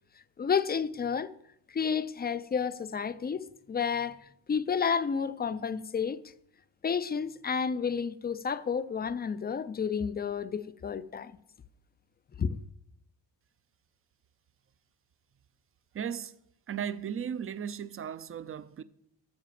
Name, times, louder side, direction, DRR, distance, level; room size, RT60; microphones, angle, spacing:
voice 1, 0.4-1.3 1.7-6.2 6.8-11.3 12.4-12.6, left 6 dB, 25° left, 0.4 m, -31 dB
voice 2, 15.9-16.4 16.7-18.8, right 8 dB, 30° right, 0.5 m, -36 dB
14.0 x 4.9 x 7.5 m
cardioid pair, 130°, 45 cm